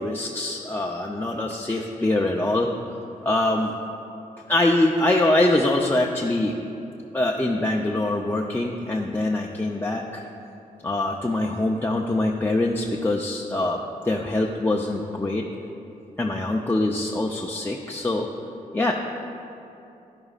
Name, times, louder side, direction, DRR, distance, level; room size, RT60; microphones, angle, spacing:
voice 1, 0.0-2.7 3.2-3.7 4.5-6.5 7.1-10.2 10.8-13.8 14.0-15.4 16.2-18.3 18.7-18.9, left 2 dB, 15° left, -1 dB, 0.6 m, -24 dB
11.0 x 10.5 x 2.5 m, 2.7 s
cardioid pair, 70°, 15 cm